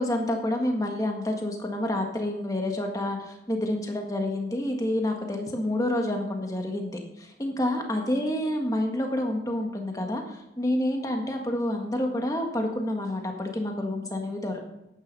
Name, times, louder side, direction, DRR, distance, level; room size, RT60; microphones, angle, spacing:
voice 1, 0.0-14.6, left 1 dB, 20° left, 3 dB, 1.6 m, -28 dB
10.5 x 9.2 x 5.4 m, 0.89 s
head